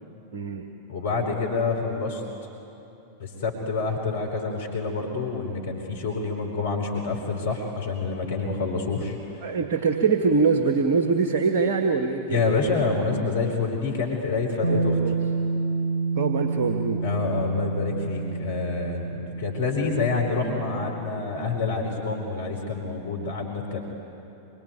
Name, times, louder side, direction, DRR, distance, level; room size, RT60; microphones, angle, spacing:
voice 1, 0.3-0.7 9.4-12.5 14.7-15.1 16.1-17.0, right 4 dB, 50° right, 5 dB, 1.5 m, -23 dB
voice 2, 0.9-2.2 3.2-9.5 12.3-15.0 17.0-23.8, left 4 dB, 60° left, 0 dB, 4.0 m, -27 dB
Bass guitar, 14.6-20.9, right 3 dB, 70° right, 1.3 m, -28 dB
25.5 x 23.5 x 9.4 m, 2.9 s
figure-of-eight pair, 90°, 0 cm